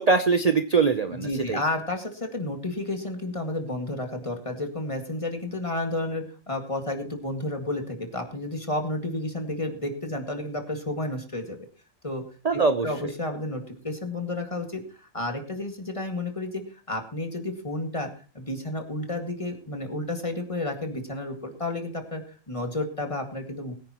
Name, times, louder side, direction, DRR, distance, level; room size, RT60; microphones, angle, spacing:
voice 1, 0.0-1.6 12.4-13.1, right 4 dB, 35° right, 8 dB, 0.8 m, -23 dB
voice 2, 1.1-11.6 12.0-12.2 12.5-22.2 22.5-23.7, left 2 dB, 25° left, 4 dB, 2.1 m, -31 dB
21.0 x 9.6 x 3.0 m, 0.36 s
omnidirectional pair, 1.3 m